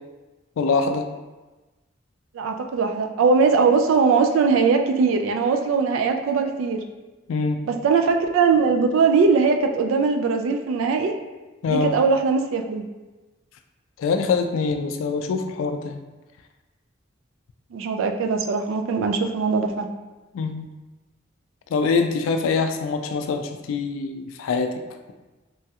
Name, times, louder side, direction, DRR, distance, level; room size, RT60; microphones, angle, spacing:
voice 1, 0.6-1.1 7.3-7.6 11.6-11.9 14.0-16.0 20.3-20.7 21.7-24.7, left 4 dB, 85° left, 7 dB, 0.3 m, -24 dB
voice 2, 2.3-6.8 7.7-11.1 11.7-12.8 17.7-19.9, right 5 dB, 90° right, 5 dB, 0.3 m, -20 dB
3.1 x 2.3 x 2.7 m, 1.2 s
head